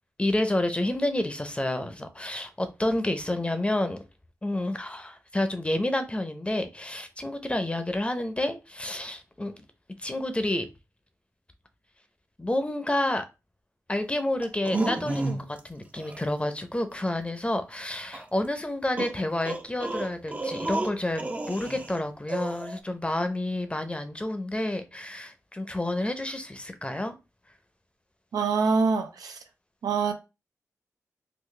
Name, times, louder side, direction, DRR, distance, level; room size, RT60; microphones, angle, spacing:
voice 1, 0.2-4.0 4.4-9.6 10.0-10.7 12.4-13.2 13.9-27.1, left 1 dB, 20° left, 0.7 m, -29 dB
sound 1, 14.4-15.6 16.0-16.2 18.1-18.2 19.0-22.0 22.3-22.8, right 2 dB, 25° right, 0.5 m, -31 dB
voice 2, 28.3-29.4 29.8-30.1, right 5 dB, 90° right, 0.6 m, -25 dB
3.9 x 2.2 x 3.2 m
cardioid pair, 55°, 6 cm